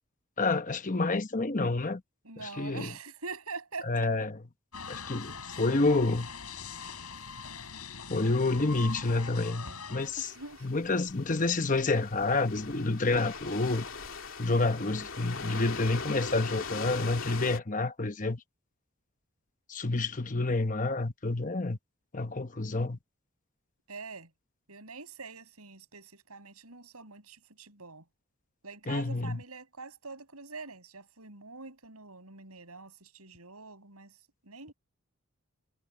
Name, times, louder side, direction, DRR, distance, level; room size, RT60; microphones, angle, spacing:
voice 1, 0.4-2.0 2.4-2.9 3.8-4.4 4.9-6.3 8.1-10.3 10.6-13.9 14.4-18.4 19.7-21.8 22.1-23.0 28.9-29.4, left 3 dB, 35° left, 1.0 m, -29 dB
voice 2, 2.2-4.1 8.7-9.9 10.2-10.8 23.9-24.3 24.7-28.0 28.6-34.2 34.4-34.7, right 4 dB, 85° right, 6.6 m, -45 dB
sound 1, 4.7-10.1, left 5 dB, 80° left, 6.7 m, -42 dB
sound 2, 10.0-17.6, left 4 dB, 60° left, 2.7 m, -40 dB
head